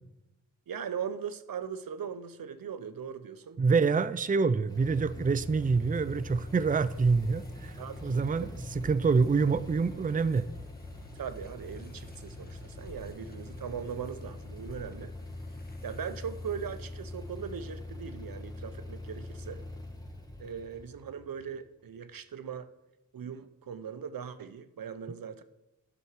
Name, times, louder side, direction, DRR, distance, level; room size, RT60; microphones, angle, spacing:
voice 1, 0.7-3.6 7.8-8.5 11.1-15.1 15.8-19.6 20.4-22.7 23.1-25.4, right 7 dB, 80° right, 0.7 m, -39 dB
voice 2, 3.6-8.5 8.8-10.5, right 4 dB, 25° right, 0.5 m, -26 dB
sound 1, 4.3-17.7, left 2 dB, 25° left, 1.0 m, -52 dB
sound 2, 4.7-21.9, left 2 dB, 10° left, 1.8 m, -44 dB
11.5 x 6.1 x 4.7 m
cardioid pair, 45°, 34 cm